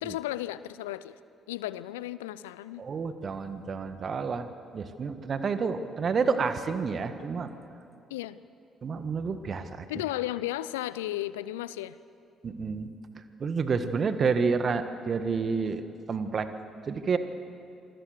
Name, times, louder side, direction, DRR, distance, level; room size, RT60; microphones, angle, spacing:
voice 1, 0.0-1.2 1.5-2.8 8.1-8.4 9.9-12.0, left 14 dB, 80° left, 17 dB, 0.5 m, -34 dB
voice 2, 2.8-4.5 4.7-7.5 8.8-9.9 12.4-12.9 13.4-16.5 16.9-17.2, right 5 dB, 45° right, 10 dB, 1.7 m, -29 dB
27.0 x 20.5 x 6.7 m, 2.7 s
figure-of-eight pair, 45°, 0 cm